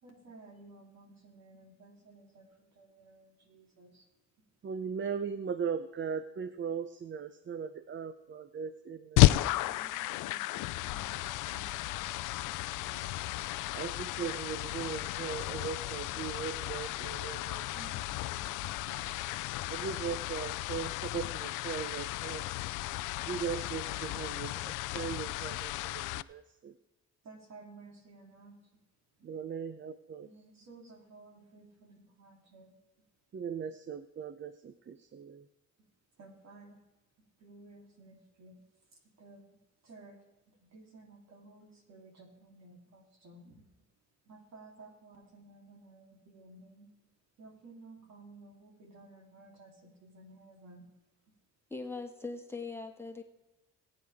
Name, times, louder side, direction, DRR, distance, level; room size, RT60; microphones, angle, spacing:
voice 1, 0.0-4.1 9.3-13.1 17.7-19.1 27.2-28.6 30.2-32.7 36.2-36.8 37.4-38.6 38.9-39.5 39.8-40.2 40.6-43.7 44.3-46.9 47.4-50.9, right 2 dB, 60° right, 1 dB, 3.4 m, -55 dB
voice 2, 4.6-9.3 13.7-17.7 19.7-22.4 23.2-26.8 29.2-30.3 33.3-35.5, right 7 dB, 40° right, 13 dB, 0.7 m, -39 dB
sound 1, 9.2-26.2, left 17 dB, 90° left, 0.5 m, -33 dB
voice 3, 51.7-53.2, left 3 dB, 10° left, 4 dB, 1.6 m, -40 dB
21.0 x 8.9 x 3.6 m, 1.1 s
cardioid pair, 90°, 30 cm